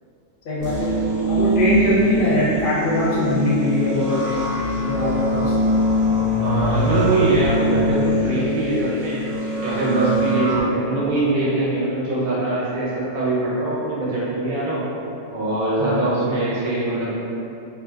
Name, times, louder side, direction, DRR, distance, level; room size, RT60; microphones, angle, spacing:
voice 1, 0.4-0.9 1.3-4.3 4.8-5.6 15.8-16.1, left 1 dB, 55° left, -7 dB, 0.6 m, -21 dB
sound 1, 0.6-10.6, equal, 65° right, 0.9 m, -23 dB
voice 2, 6.4-9.2 9.6-14.8 15.3-17.1, right 2 dB, 85° right, -8 dB, 1.3 m, -22 dB
3.2 x 2.4 x 2.2 m, 2.7 s
omnidirectional pair, 1.4 m